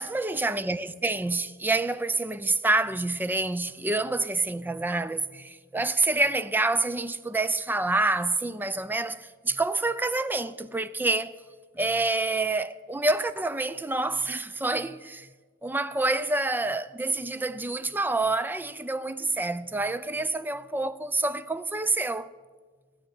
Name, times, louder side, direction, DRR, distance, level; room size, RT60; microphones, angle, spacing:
voice 1, 0.0-11.3 11.8-15.3 15.6-22.3, right 2 dB, 10° right, 0.4 m, -27 dB
14.0 x 8.6 x 7.7 m
head